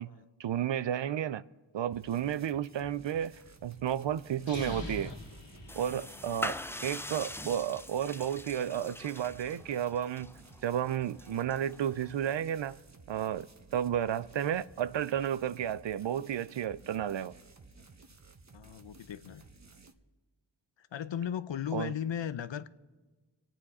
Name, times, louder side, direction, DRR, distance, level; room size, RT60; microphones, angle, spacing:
voice 1, 0.4-1.4 1.7-5.1 5.7-6.6 6.8-10.3 10.6-12.8 13.1-17.3 21.7-21.9, right 10 dB, 75° right, 0.5 m, -32 dB
sound 1, 1.9-19.9, right 3 dB, 40° right, 1.1 m, -56 dB
sound 2, 4.4-6.5, left 2 dB, 50° left, 2.0 m, -42 dB
sound 3, 5.7-12.3, left 1 dB, 5° left, 0.4 m, -43 dB
voice 2, 18.5-19.4 20.8-22.7, left 9 dB, 80° left, 0.6 m, -36 dB
25.5 x 9.1 x 4.2 m
cardioid pair, 40°, 44 cm